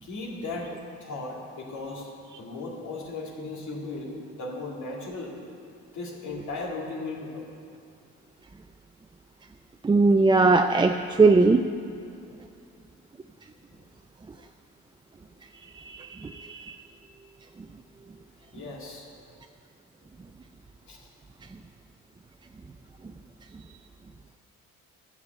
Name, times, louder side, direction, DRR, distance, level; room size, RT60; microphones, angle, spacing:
voice 1, 0.0-0.8 1.0-5.4 5.9-7.5 12.2-12.4 13.7-13.8 18.5-19.1 20.9-21.1, left 3 dB, 75° left, -2 dB, 2.4 m, -37 dB
voice 2, 9.8-11.7 15.7-16.8, right 3 dB, 15° right, 5 dB, 0.4 m, -20 dB
11.5 x 7.1 x 7.2 m, 2.4 s
cardioid pair, 90°, 30 cm